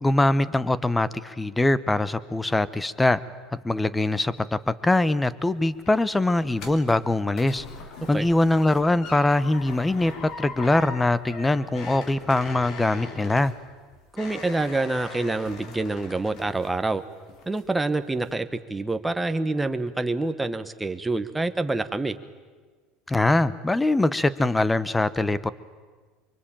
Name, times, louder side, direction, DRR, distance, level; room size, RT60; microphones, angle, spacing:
voice 1, 0.0-3.2 3.6-7.6 8.1-13.5 23.1-25.5, left 2 dB, 10° left, 17 dB, 1.0 m, -22 dB
sound 1, 5.4-17.0 17.3-17.8 18.2-18.3, left 4 dB, 50° left, 3.4 m, -41 dB
voice 2, 14.1-17.0 17.5-22.2, right 2 dB, 10° right, 9 dB, 1.3 m, -27 dB
24.0 x 24.0 x 9.0 m, 1.4 s
supercardioid pair, 130°, 0 cm